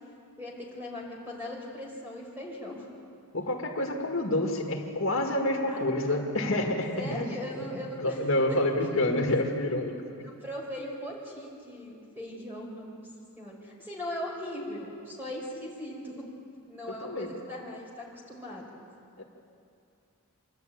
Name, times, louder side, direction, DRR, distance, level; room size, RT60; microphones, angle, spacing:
voice 1, 0.4-2.9 5.7-6.0 7.0-8.2 8.5-9.2 10.2-13.1 13.4-16.3 16.7-18.7, left 1 dB, 10° right, -3 dB, 4.6 m, -39 dB
voice 2, 3.3-7.4 7.7-9.9 16.9-17.3 19.2-19.3, left 1 dB, 65° left, 1 dB, 1.8 m, -28 dB
26.0 x 11.5 x 9.2 m, 2.5 s
head